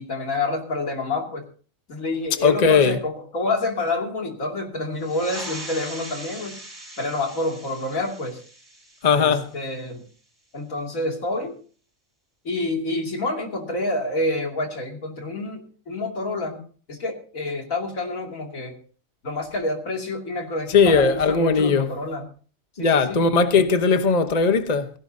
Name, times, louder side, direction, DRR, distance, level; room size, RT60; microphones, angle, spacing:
voice 1, 0.0-1.4 1.9-6.5 7.0-8.4 9.2-10.0 10.5-11.6 12.4-15.6 15.9-16.6 16.9-18.7 19.2-22.2 22.8-23.2, left 2 dB, 80° left, 3.0 m, -28 dB
voice 2, 2.4-3.0 9.0-9.5 20.7-21.9 22.8-24.9, left 5 dB, 35° left, 1.0 m, -18 dB
sound 1, 5.0-10.1, right 1 dB, 15° right, 4.9 m, -40 dB
17.0 x 16.5 x 2.7 m
omnidirectional pair, 1.4 m